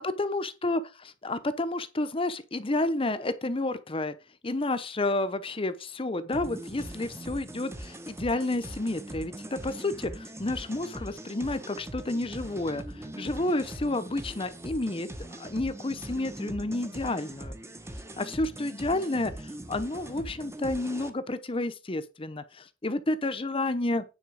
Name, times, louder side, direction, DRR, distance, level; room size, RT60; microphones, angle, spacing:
voice 1, 0.0-4.1 4.4-15.1 15.4-17.5 18.2-24.0, left 2 dB, 30° left, 0.8 m, -30 dB
sound 1, 6.3-21.1, right 1 dB, 15° right, 1.0 m, -41 dB
9.6 x 4.3 x 6.3 m
head